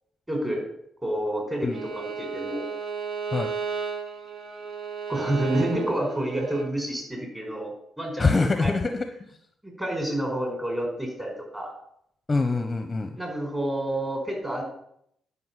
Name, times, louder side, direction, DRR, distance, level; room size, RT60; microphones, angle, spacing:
voice 1, 0.3-0.6 1.0-2.6 5.1-8.7 9.6-11.7 13.2-14.6, right 1 dB, 15° right, 1 dB, 4.7 m, -29 dB
Bowed string instrument, 1.7-6.7, right 6 dB, 70° right, 1.3 m, -33 dB
voice 2, 8.2-9.3 12.3-13.1, left 3 dB, 25° left, 7 dB, 0.9 m, -24 dB
11.0 x 5.5 x 7.5 m, 0.72 s
cardioid pair, 90°, 0 cm